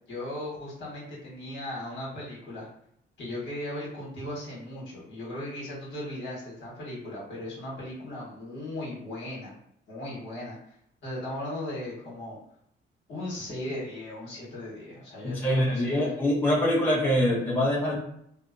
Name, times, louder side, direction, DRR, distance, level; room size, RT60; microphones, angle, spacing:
voice 1, 0.1-2.7 3.2-9.6 9.9-10.8 11.0-12.4 13.1-16.1, left 1 dB, 75° left, -5 dB, 1.3 m, -37 dB
voice 2, 15.2-18.0, left 1 dB, 10° left, -7 dB, 1.0 m, -24 dB
2.8 x 2.0 x 2.5 m, 0.71 s
cardioid pair, 90°, 20 cm